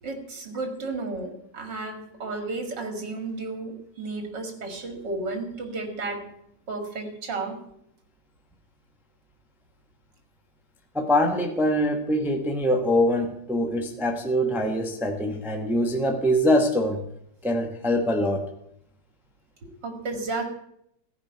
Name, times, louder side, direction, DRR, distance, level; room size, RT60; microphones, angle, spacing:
voice 1, 0.0-6.2 6.7-7.6 19.6-20.4, right 3 dB, 80° right, 5 dB, 2.8 m, -33 dB
voice 2, 10.9-17.0 17.4-18.4, equal, ahead, 3 dB, 1.0 m, -23 dB
14.5 x 5.2 x 8.8 m, 0.74 s
omnidirectional pair, 1.9 m